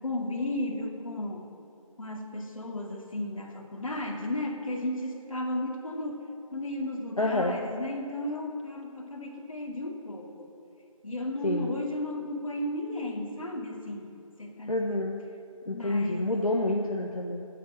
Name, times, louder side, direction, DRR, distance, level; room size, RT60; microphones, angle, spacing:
voice 1, 0.0-1.5 2.0-6.2 6.5-10.5 11.0-14.1 14.4-14.8 15.6-16.3 16.9-17.1, left 1 dB, 70° left, 0 dB, 2.3 m, -34 dB
voice 2, 7.2-7.6 11.4-11.7 14.7-15.2 15.7-17.5, left 2 dB, 85° left, 0 dB, 1.3 m, -28 dB
9.3 x 8.5 x 9.0 m, 2.8 s
figure-of-eight pair, 170°, 18 cm